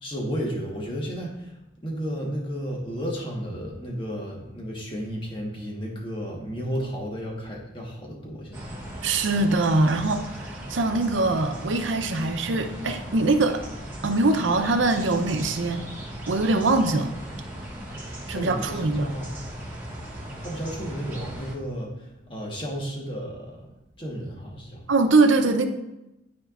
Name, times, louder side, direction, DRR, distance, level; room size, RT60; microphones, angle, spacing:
voice 1, 0.0-8.8 18.3-19.3 19.6-24.8, equal, 25° left, -2 dB, 1.3 m, -33 dB
sound 1, 8.5-21.6, right 1 dB, 10° right, 1.1 m, -38 dB
voice 2, 9.0-13.6 14.0-15.8 16.3-17.1 18.3-19.1 24.9-25.7, right 2 dB, 85° right, 6 dB, 0.7 m, -22 dB
12.5 x 4.4 x 2.5 m, 0.93 s
head